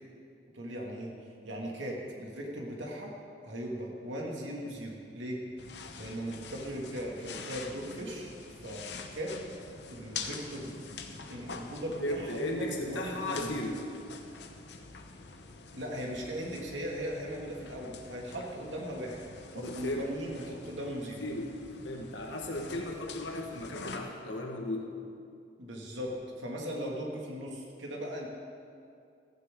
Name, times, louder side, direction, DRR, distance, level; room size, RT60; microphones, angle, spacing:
voice 1, 0.5-3.1 3.4-5.5 6.0-9.4 9.9-10.8 11.3-13.5 15.7-19.2 19.5-21.2 25.6-28.3, equal, 90° right, -1 dB, 2.3 m, -38 dB
sound 1, 5.6-24.0, left 4 dB, 70° left, 1.0 m, -46 dB
voice 2, 12.0-13.8 19.5-20.1 21.2-21.5 21.8-24.9, left 1 dB, 90° left, 1 dB, 1.6 m, -35 dB
15.0 x 14.5 x 3.8 m, 2.5 s
head